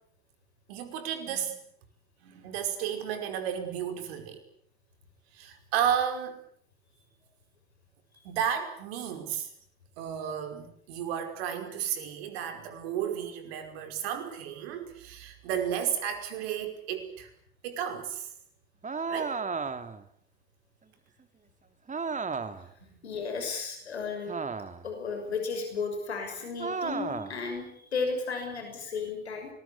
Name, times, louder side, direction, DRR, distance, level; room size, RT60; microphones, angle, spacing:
voice 1, 0.7-1.6 2.2-4.4 5.3-6.4 8.2-9.5 10.0-17.3 17.6-18.3 19.1-19.4, right 9 dB, 70° right, 8 dB, 5.2 m, -33 dB
sound 1, 18.8-20.1 21.9-22.7 24.3-24.9 26.6-27.4, right 5 dB, 25° right, 2.6 m, -33 dB
voice 2, 23.0-24.3 24.8-29.5, left 4 dB, 85° left, 5 dB, 6.3 m, -34 dB
26.0 x 21.0 x 8.4 m, 0.63 s
hypercardioid pair, 65°, 32 cm